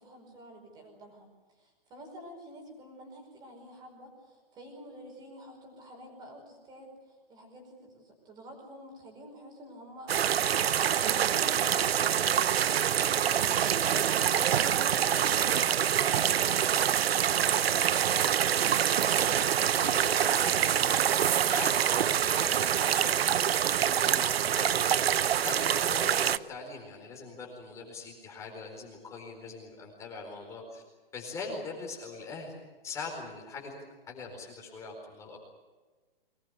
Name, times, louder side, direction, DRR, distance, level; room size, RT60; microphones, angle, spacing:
voice 1, 0.0-12.8 17.4-19.5, right 1 dB, 15° right, 3 dB, 5.1 m, -48 dB
sound 1, 10.1-26.4, right 9 dB, 85° right, 0.9 m, -26 dB
voice 2, 19.8-21.0 21.5-23.5 23.8-30.8 31.1-33.8 34.1-35.4, left 4 dB, 10° left, 0 dB, 4.3 m, -42 dB
24.0 x 20.0 x 8.2 m, 1.3 s
hypercardioid pair, 170°, 30 cm